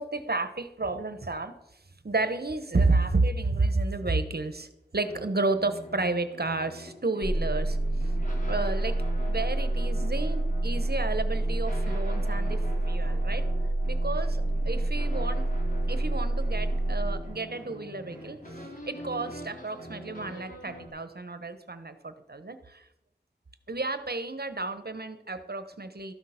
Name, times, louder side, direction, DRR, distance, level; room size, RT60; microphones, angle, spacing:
voice 1, 0.0-1.5 2.0-4.7 4.9-7.8 8.5-9.0 9.3-13.4 13.9-15.4 15.9-18.4 18.9-22.8 23.7-26.1, right 3 dB, 60° right, 10 dB, 1.0 m, -31 dB
sound 1, 5.0-20.9, equal, 45° left, 3.1 m, -43 dB
sound 2, 7.2-17.2, right 2 dB, 10° right, 0.6 m, -28 dB
13.0 x 6.5 x 5.8 m, 0.85 s
wide cardioid pair, 45°, 19 cm